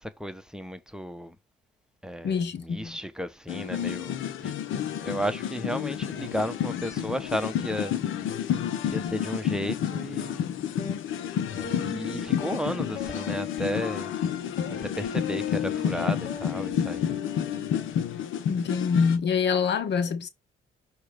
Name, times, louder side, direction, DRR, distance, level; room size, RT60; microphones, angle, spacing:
voice 1, 0.0-1.4 2.0-4.5 5.0-8.0 8.9-10.4 11.5-14.1 14.8-17.2, equal, 5° right, 0.9 m, -34 dB
voice 2, 2.2-3.0 18.5-20.3, left 6 dB, 60° left, 1.1 m, -26 dB
sound 1, 3.5-19.2, left 9 dB, 85° left, 0.9 m, -30 dB
sound 2, 10.8-11.0 11.6-18.0, left 4 dB, 40° left, 2.3 m, -41 dB
6.2 x 3.1 x 5.0 m
cardioid pair, 90°, 20 cm